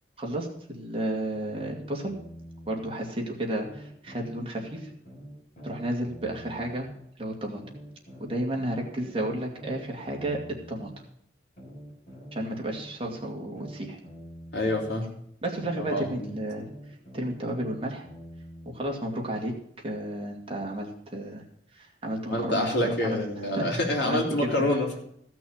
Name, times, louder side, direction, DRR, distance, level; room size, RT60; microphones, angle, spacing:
voice 1, 0.2-2.2 2.7-4.9 5.6-6.9 7.2-7.6 8.2-10.4 10.7-10.9 12.3-14.0 15.4-16.7 17.1-18.0 18.7-19.5 19.8-21.4 21.7-24.8, right 1 dB, 30° right, 0 dB, 2.4 m, -32 dB
sound 1, 1.6-3.0 3.6-7.0 7.6-11.0 11.6-15.0 15.6-19.0, equal, 40° left, 6.0 m, -45 dB
voice 2, 14.5-15.1 15.7-16.3 22.3-25.0, left 1 dB, 60° left, 0 dB, 3.5 m, -27 dB
15.5 x 6.1 x 7.3 m, 0.70 s
head